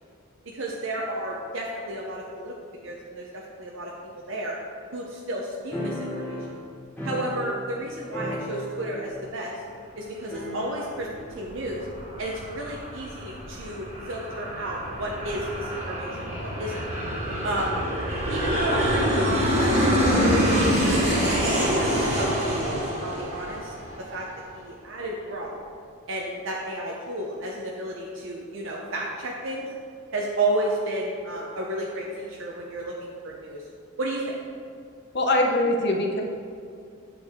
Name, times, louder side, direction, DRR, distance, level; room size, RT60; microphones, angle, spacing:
voice 1, 0.5-2.5 2.8-3.9 4.3-4.6 4.9-6.4 7.0-9.6 10.0-11.1 11.3-11.8 12.2-16.8 17.4-17.8 18.3-19.8 20.1-24.3 24.5-25.5 26.1-29.7 30.1-33.6 34.0-34.4, right 1 dB, 60° right, -2 dB, 0.8 m, -32 dB
sound 1, 5.7-7.8 8.1-9.1 9.4-9.5 10.3-11.1, equal, 10° left, 1.5 m, -34 dB
Aircraft, 11.1-24.3, equal, 30° right, 1.7 m, -26 dB
voice 2, 35.1-36.2, left 1 dB, 50° left, 1 dB, 0.9 m, -22 dB
9.0 x 6.3 x 3.7 m, 2.3 s
head